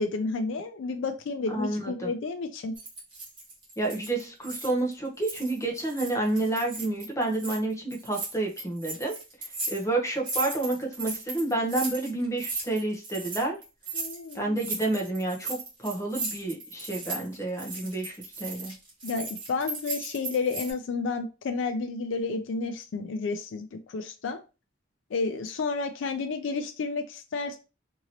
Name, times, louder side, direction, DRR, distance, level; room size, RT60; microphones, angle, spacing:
voice 1, 0.0-2.7 13.9-14.6 19.0-24.4 25.1-27.6, left 4 dB, 70° left, 7 dB, 0.4 m, -31 dB
voice 2, 1.5-2.1 3.8-9.1 9.7-13.6 14.3-18.7, right 2 dB, 15° left, 0 dB, 0.7 m, -29 dB
sound 1, 2.7-4.9 5.2-7.6 7.9-20.7, right 3 dB, 25° right, 1.2 m, -37 dB
2.9 x 2.7 x 2.8 m, 0.30 s
head